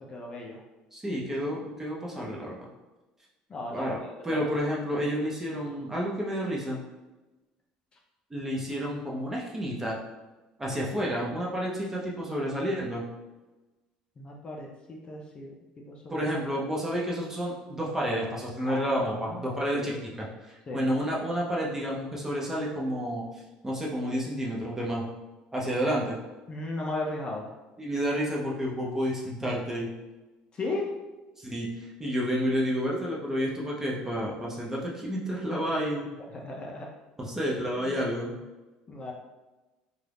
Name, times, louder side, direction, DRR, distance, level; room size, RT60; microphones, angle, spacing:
voice 1, 0.1-0.6 3.5-4.5 10.6-10.8 14.2-16.3 18.6-19.4 19.7-20.0 20.7-20.9 26.5-27.5 30.5-30.9 36.3-36.9 37.8-38.0 38.9-39.1, left 2 dB, 35° left, -1 dB, 0.6 m, -36 dB
voice 2, 0.9-2.7 3.7-4.0 4.2-6.8 8.3-10.0 10.6-13.0 16.1-23.2 23.6-25.0 25.5-26.2 27.8-29.9 31.4-36.1 37.2-38.3, equal, 15° right, -3 dB, 0.7 m, -30 dB
2.6 x 2.4 x 3.4 m, 1.1 s
supercardioid pair, 100°, 3 cm